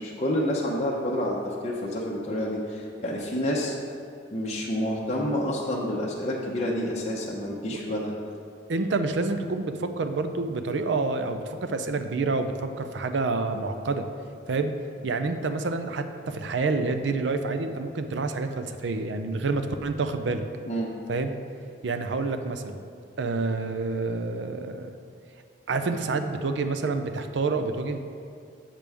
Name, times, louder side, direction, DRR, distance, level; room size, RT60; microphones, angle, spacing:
voice 1, 0.0-3.8 4.3-8.2 20.7-20.9, equal, 35° left, -4 dB, 0.7 m, -28 dB
voice 2, 8.7-14.1 14.5-14.7 15.0-20.4 21.1-21.4 21.8-22.8 23.2-24.9 25.7-28.0, right 3 dB, 70° right, 8 dB, 0.5 m, -28 dB
7.4 x 6.7 x 3.4 m, 2.3 s
head